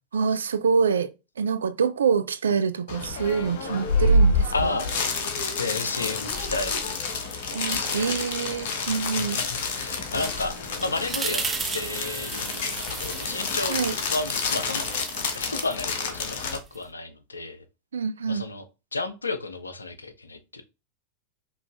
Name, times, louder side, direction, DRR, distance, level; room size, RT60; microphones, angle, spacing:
voice 1, 0.1-1.1 1.4-4.8 7.5-9.4 13.7-13.9 17.9-18.5, right 6 dB, 70° right, 0.4 m, -26 dB
sound 1, 2.9-16.6, left 2 dB, 55° left, 0.9 m, -28 dB
voice 2, 4.5-5.1 5.6-7.0 7.6-8.2 9.2-9.3 9.7-10.5 10.8-11.4 11.7-13.8 14.1-14.9 15.3-17.6 18.3-18.6 18.9-20.6, left 3 dB, 80° left, 0.6 m, -32 dB
sound 2, 6.3-7.8 8.2-16.9, right 4 dB, 15° right, 0.6 m, -37 dB
5.1 x 2.9 x 2.5 m
figure-of-eight pair, 90°, 0 cm